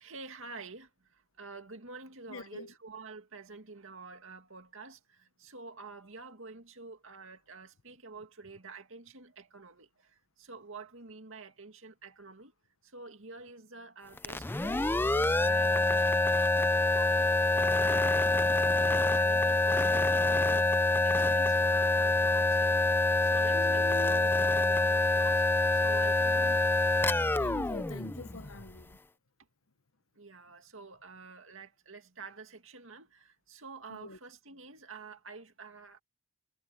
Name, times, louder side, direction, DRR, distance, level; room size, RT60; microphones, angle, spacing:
voice 1, 0.0-12.5 12.8-16.6 16.9-20.7 21.0-22.9 23.2-26.7 30.1-36.0, right 4 dB, 70° right, 2.4 m, -48 dB
voice 2, 2.3-2.7 21.4-21.5 23.5-24.3 26.4-26.6 27.4-29.0 33.9-34.2, left 3 dB, 75° left, 1.0 m, -44 dB
sound 1, 14.2-28.8, left 2 dB, 10° left, 0.4 m, -26 dB
head